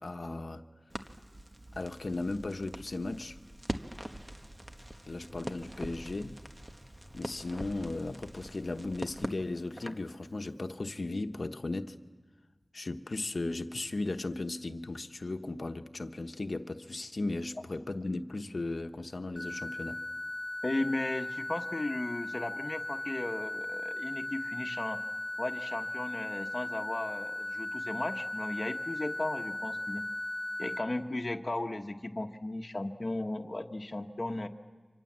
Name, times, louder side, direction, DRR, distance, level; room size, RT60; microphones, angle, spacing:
voice 1, 0.0-0.6 1.8-3.4 5.1-6.4 7.1-12.0 12.7-20.0, left 2 dB, 75° left, 7 dB, 1.1 m, -36 dB
Crackle, 0.9-10.1, right 1 dB, 25° right, 1.3 m, -43 dB
sound 1, 19.4-30.8, left 1 dB, 15° left, 2.4 m, -37 dB
voice 2, 20.6-25.0 25.4-30.0 30.6-34.5, left 2 dB, 50° left, 6 dB, 1.3 m, -36 dB
29.5 x 25.5 x 7.5 m, 1.4 s
wide cardioid pair, 45°, 0 cm